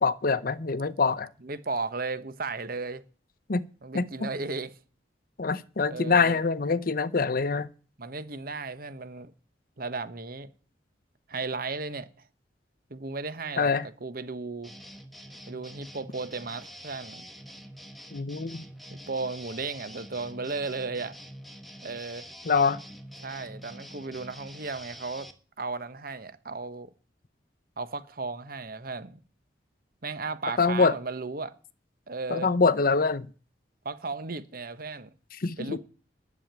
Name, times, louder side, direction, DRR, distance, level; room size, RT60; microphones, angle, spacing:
voice 1, 0.0-1.3 3.5-3.7 3.9-4.3 5.4-7.7 13.6-13.9 18.1-18.6 22.4-22.8 30.6-31.0 32.3-33.3 35.4-35.8, left 4 dB, 50° left, 0.7 m, -25 dB
voice 2, 1.4-3.0 3.8-4.7 5.9-6.4 8.0-9.3 9.8-10.5 11.3-12.1 12.9-14.8 15.5-17.3 18.9-21.2 21.8-22.3 23.2-25.3 25.6-26.9 27.8-29.2 30.0-31.5 32.1-32.5 33.8-35.1 35.6-35.8, right 3 dB, 50° right, 1.1 m, -35 dB
sound 1, 14.6-25.3, equal, ahead, 1.2 m, -46 dB
11.0 x 7.2 x 8.8 m
head